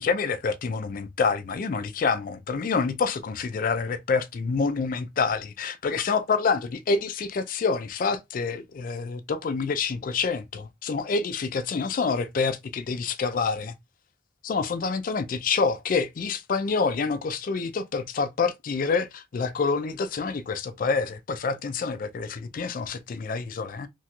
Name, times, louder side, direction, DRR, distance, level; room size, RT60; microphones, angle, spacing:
voice 1, 0.0-13.7 14.4-23.9, left 4 dB, 45° left, 0.3 m, -27 dB
2.9 x 2.9 x 2.3 m
head